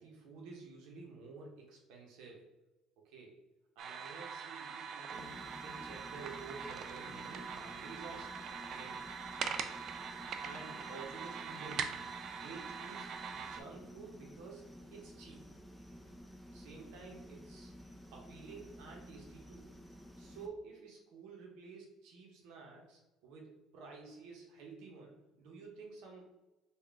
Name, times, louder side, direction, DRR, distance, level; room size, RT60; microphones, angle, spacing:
voice 1, 0.0-2.4 3.0-3.4 3.7-8.9 10.4-11.9 12.3-15.5 16.5-17.7 18.1-19.7 20.2-26.3, right 4 dB, 75° right, 0 dB, 0.8 m, -51 dB
sound 1, 3.8-13.6, right 6 dB, 55° right, 0.3 m, -43 dB
sound 2, 5.1-20.5, equal, ahead, 0.6 m, -53 dB
3.7 x 2.3 x 3.4 m, 1.1 s
supercardioid pair, 75°, 0 cm